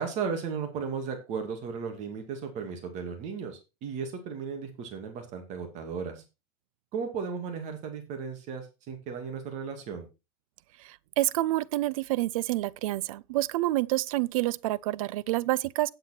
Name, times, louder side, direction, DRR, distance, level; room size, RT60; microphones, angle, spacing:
voice 1, 0.0-6.2 6.9-10.1, right 6 dB, 40° right, 2.4 m, -35 dB
voice 2, 11.2-15.9, right 17 dB, 75° right, 0.6 m, -28 dB
9.0 x 7.8 x 4.4 m
supercardioid pair, 145°, 18 cm